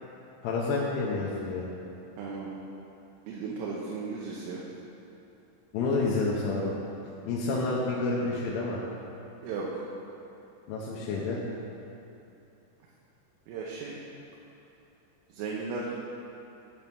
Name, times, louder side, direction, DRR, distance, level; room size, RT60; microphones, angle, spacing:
voice 1, 0.4-1.7 5.7-6.7 7.3-8.8 10.7-11.4, left 3 dB, 80° left, -5 dB, 3.1 m, -29 dB
voice 2, 2.2-2.5 3.3-4.6 9.4-9.7 13.5-14.0 15.3-15.9, right 4 dB, 85° right, -4 dB, 3.4 m, -35 dB
8.2 x 5.4 x 5.9 m, 2.9 s
omnidirectional pair, 5.6 m